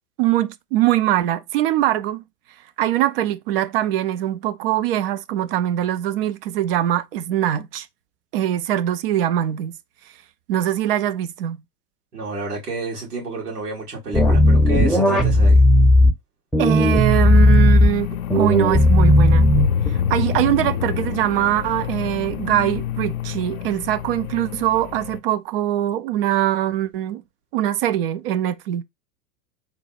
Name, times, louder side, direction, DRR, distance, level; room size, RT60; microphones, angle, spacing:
voice 1, 0.2-2.2 2.8-7.9 8.3-9.7 10.5-11.6 16.6-19.5 19.9-27.2 27.5-28.8, right 12 dB, 40° right, 0.4 m, -22 dB
voice 2, 12.1-15.7, right 2 dB, 75° right, 2.5 m, -29 dB
sound 1, 14.1-16.1 16.5-17.9 18.3-19.9, left 1 dB, ahead, 0.6 m, -14 dB
sound 2, 17.2-25.2, left 9 dB, 65° left, 0.7 m, -27 dB
4.0 x 2.2 x 4.2 m
figure-of-eight pair, 90°, 47 cm